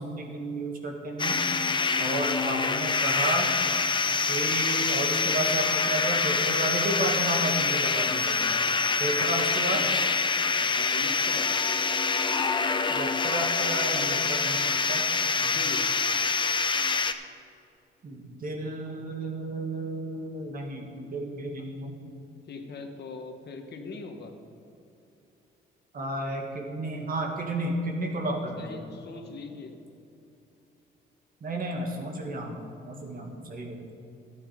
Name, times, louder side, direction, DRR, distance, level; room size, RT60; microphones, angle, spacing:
voice 1, 0.0-1.4 2.0-3.5 4.3-8.5 9.0-9.9 12.9-15.0 18.0-22.0 25.9-28.8 31.4-32.6 32.8-33.8, right 2 dB, 45° right, 2 dB, 2.1 m, -32 dB
sound 1, 1.2-17.1, left 4 dB, 25° left, 0.6 m, -26 dB
voice 2, 8.4-10.1 10.5-11.5 15.4-15.9 22.5-24.3 28.6-29.8, left 4 dB, 55° left, 4 dB, 1.4 m, -41 dB
12.5 x 8.6 x 5.2 m, 2.8 s
cardioid pair, 90°, 20 cm